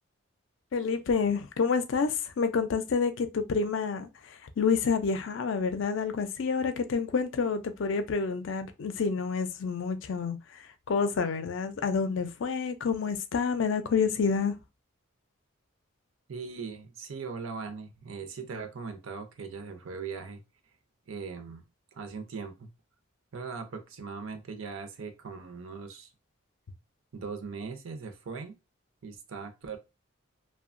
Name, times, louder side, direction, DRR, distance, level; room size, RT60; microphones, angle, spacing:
voice 1, 0.7-14.6, left 5 dB, 65° left, 0.4 m, -28 dB
voice 2, 16.3-20.4 21.1-21.6 21.9-22.7 23.3-26.1 27.1-28.5 29.0-29.8, right 5 dB, 75° right, 0.5 m, -39 dB
2.8 x 2.2 x 2.5 m
head